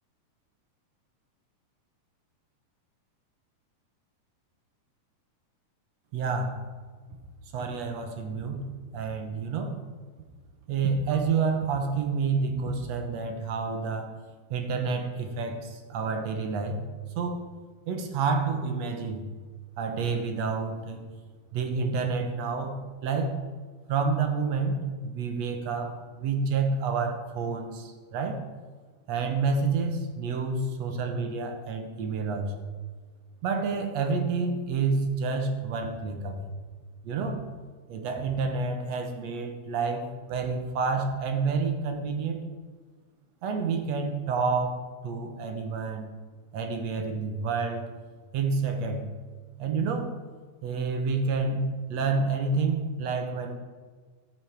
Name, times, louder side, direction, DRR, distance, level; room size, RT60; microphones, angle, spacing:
voice 1, 6.1-6.6 7.5-8.7 8.9-9.8 10.7-14.1 14.5-16.8 17.2-17.4 17.9-19.2 19.8-21.0 21.5-23.4 23.9-28.4 29.1-32.5 33.4-36.4 37.0-37.4 37.9-42.4 43.4-46.1 46.5-47.9 48.3-49.1 49.6-50.1 50.6-51.6 51.9-53.5, right 4 dB, 65° right, 4 dB, 2.2 m, -29 dB
13.5 x 7.6 x 4.7 m, 1.5 s
omnidirectional pair, 3.5 m